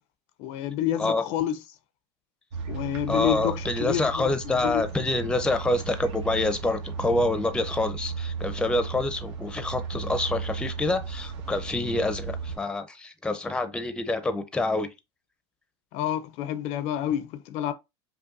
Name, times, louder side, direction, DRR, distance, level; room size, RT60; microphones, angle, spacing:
voice 1, 0.4-1.6 2.7-4.8 15.9-17.7, left 11 dB, 55° left, 0.5 m, -29 dB
sound 1, 2.5-12.6, right 5 dB, 85° right, 1.4 m, -35 dB
voice 2, 3.1-14.9, left 2 dB, 5° left, 0.5 m, -27 dB
5.4 x 2.2 x 2.5 m
supercardioid pair, 120°, 15 cm